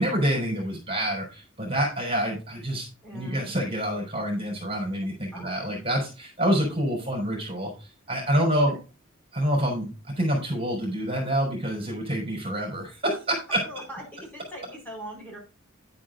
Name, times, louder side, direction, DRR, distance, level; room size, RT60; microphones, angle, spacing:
voice 1, 0.0-2.9 3.1-7.7 8.1-8.7 9.3-9.9 10.2-13.6, equal, 30° right, -1 dB, 4.7 m, -27 dB
voice 2, 3.0-3.5 5.3-5.8 8.6-8.8 13.6-15.4, equal, 10° left, -2 dB, 5.1 m, -41 dB
10.5 x 9.4 x 2.6 m, 0.32 s
head